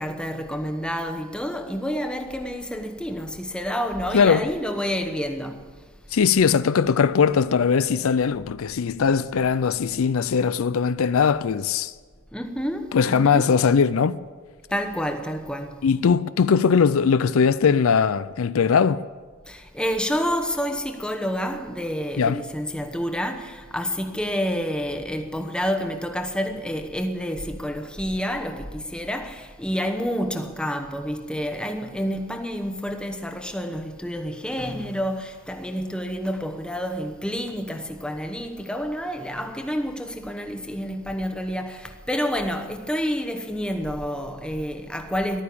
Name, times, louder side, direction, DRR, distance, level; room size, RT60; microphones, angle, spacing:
voice 1, 0.0-5.7 12.3-13.4 14.7-15.9 19.5-45.4, equal, 5° left, 1.0 m, -29 dB
voice 2, 4.1-4.5 6.1-11.9 12.9-14.2 15.8-19.0 22.2-22.4, left 6 dB, 75° left, 0.4 m, -20 dB
14.0 x 12.0 x 8.5 m
head